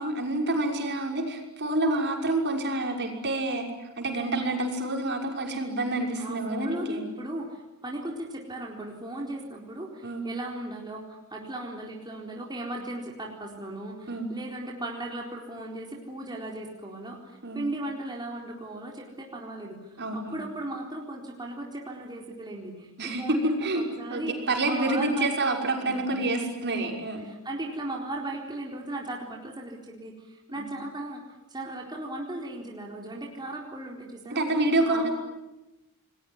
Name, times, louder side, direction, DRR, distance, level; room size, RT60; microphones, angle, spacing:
voice 1, 0.0-7.0 10.0-10.2 14.1-14.3 17.4-17.6 20.0-20.4 23.0-27.3 30.5-30.7 34.3-35.1, right 2 dB, 55° right, 2 dB, 5.9 m, -28 dB
voice 2, 6.2-24.4 24.7-25.3 25.8-26.4 27.2-34.5 34.9-35.1, right 1 dB, 20° right, -1 dB, 4.1 m, -37 dB
29.5 x 21.0 x 9.7 m, 0.99 s
head